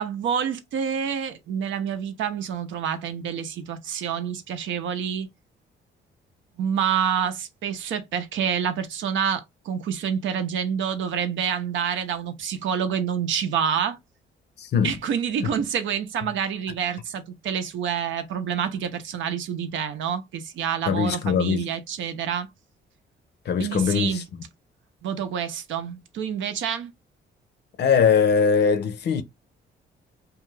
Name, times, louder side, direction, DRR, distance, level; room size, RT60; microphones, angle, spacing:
voice 1, 0.0-5.3 6.6-14.0 14.8-22.5 23.6-24.3 25.0-26.9, right 8 dB, 75° right, 0.6 m, -27 dB
voice 2, 14.6-15.0 15.4-15.5 20.9-21.7 23.5-24.2 27.8-29.2, left 6 dB, 60° left, 0.6 m, -21 dB
2.4 x 2.3 x 3.1 m
cardioid pair, 90°, 20 cm